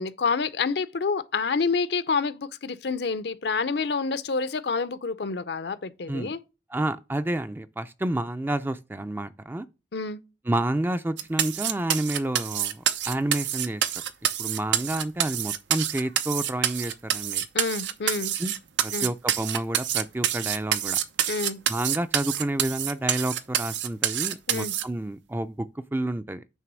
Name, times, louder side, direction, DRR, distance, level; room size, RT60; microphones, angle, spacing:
voice 1, 0.0-6.4 9.9-10.2 17.5-18.3 18.9-19.1 21.3-21.6 24.5-24.7, left 4 dB, 65° left, 0.6 m, -28 dB
voice 2, 6.7-9.7 10.5-13.8 14.4-17.5 18.4-18.6 18.8-21.0 21.7-25.7 25.9-26.4, right 1 dB, 10° right, 0.4 m, -29 dB
sound 1, 11.2-24.8, right 10 dB, 90° right, 0.7 m, -27 dB
9.0 x 3.4 x 6.1 m
head